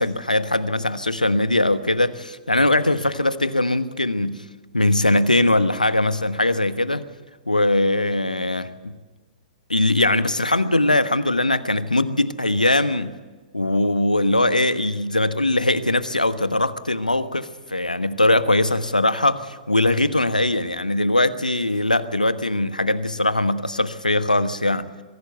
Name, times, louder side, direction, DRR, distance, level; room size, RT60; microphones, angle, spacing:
voice 1, 0.0-4.4 4.7-7.0 7.5-8.9 9.7-13.2 13.5-24.9, left 1 dB, 85° left, 12 dB, 1.3 m, -21 dB
22.5 x 16.5 x 8.1 m, 1.3 s
figure-of-eight pair, 115°, 4 cm